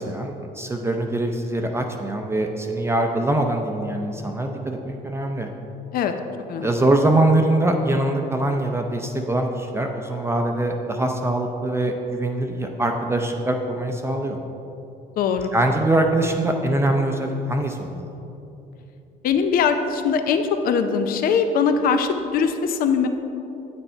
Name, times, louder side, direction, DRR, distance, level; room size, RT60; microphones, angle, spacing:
voice 1, 0.0-5.5 6.6-14.4 15.5-18.1, right 1 dB, 15° right, 3 dB, 0.6 m, -23 dB
voice 2, 15.2-15.5 19.2-23.1, left 6 dB, 60° left, 7 dB, 0.6 m, -21 dB
8.8 x 6.9 x 4.4 m, 2.9 s
cardioid pair, 110°, 17 cm